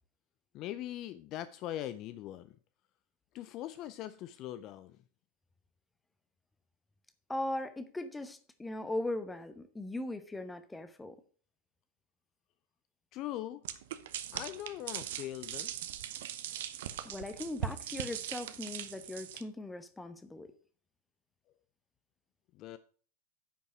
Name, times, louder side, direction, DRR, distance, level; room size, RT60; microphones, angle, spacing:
voice 1, 0.5-2.6 3.3-5.0 13.1-13.6 14.3-15.7 22.5-22.8, left 13 dB, 35° left, 0.4 m, -41 dB
voice 2, 7.3-11.2 17.0-20.5, left 1 dB, 10° left, 1.0 m, -39 dB
sound 1, 13.6-19.4, right 11 dB, 55° right, 0.8 m, -40 dB
9.9 x 5.4 x 6.0 m
figure-of-eight pair, 90°, 0 cm